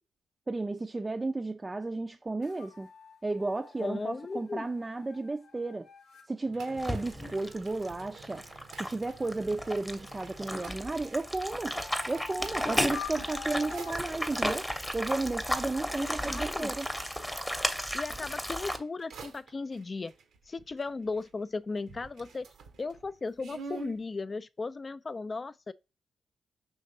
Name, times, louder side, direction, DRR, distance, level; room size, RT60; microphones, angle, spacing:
voice 1, 0.5-2.9 3.2-5.9 6.3-8.4 8.8-11.7 12.1-14.7 14.9-16.9, right 2 dB, 25° right, 0.4 m, -33 dB
sound 1, 2.4-6.3 9.2-10.5 11.0-14.2, left 6 dB, 75° left, 0.7 m, -46 dB
voice 2, 3.8-4.7 16.0-16.7 17.9-20.1 20.5-22.5 22.8-25.7, left 3 dB, 40° left, 0.3 m, -36 dB
sound 2, 6.4-18.0 18.6-21.5 21.8-24.0, right 5 dB, 75° right, 0.7 m, -50 dB
sound 3, 6.8-18.8, equal, 5° left, 0.8 m, -34 dB
5.2 x 3.1 x 2.7 m
hypercardioid pair, 45°, 0 cm